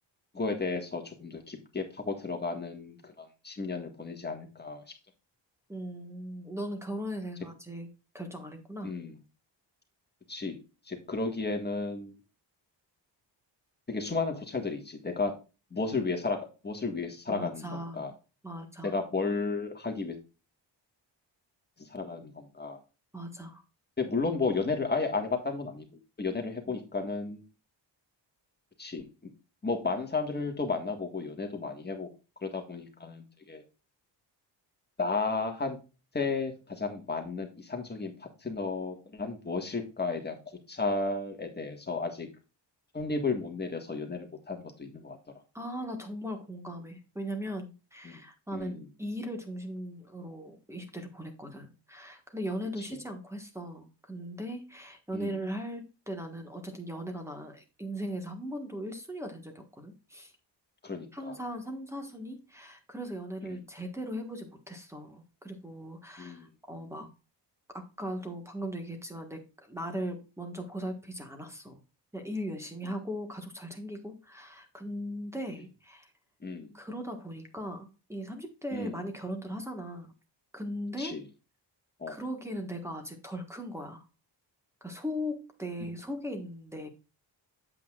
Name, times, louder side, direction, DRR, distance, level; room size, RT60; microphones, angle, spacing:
voice 1, 0.3-4.8 8.8-9.1 10.3-10.5 10.9-12.1 13.9-15.3 15.7-16.4 16.6-18.1 18.8-20.2 21.8-22.8 24.0-25.9 26.2-27.4 28.8-29.0 29.6-32.1 32.4-33.6 35.0-35.8 36.1-40.4 40.7-42.3 42.9-45.2 48.0-48.2 48.5-48.9 52.8-52.9 55.1-55.3 60.8-61.3 63.5-63.6 66.2-66.5 76.4-76.7 78.7-79.0 81.0-81.2 82.0-82.2, left 3 dB, 20° left, 3 dB, 1.7 m, -33 dB
voice 2, 5.7-7.9 8.1-8.9 17.3-18.1 18.4-18.9 23.1-23.6 26.3-26.4 26.7-26.8 45.5-60.3 61.1-67.1 67.7-71.8 72.1-76.1 76.7-80.1 80.5-81.2 82.1-84.1 84.8-86.9, equal, 5° right, 5 dB, 1.5 m, -38 dB
8.3 x 8.1 x 2.4 m, 0.31 s
wide cardioid pair, 145°, 44 cm